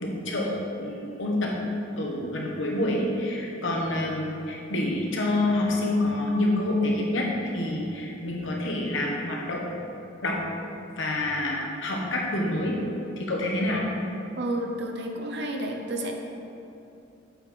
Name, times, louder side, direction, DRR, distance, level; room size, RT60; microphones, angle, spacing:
voice 1, 0.0-1.5 2.0-7.3 7.5-9.6 10.2-10.4 11.0-12.8 13.2-13.9, left 1 dB, 75° left, -2 dB, 1.1 m, -27 dB
voice 2, 14.3-16.1, right 1 dB, 60° right, 2 dB, 0.7 m, -31 dB
7.8 x 4.4 x 4.3 m, 2.8 s
head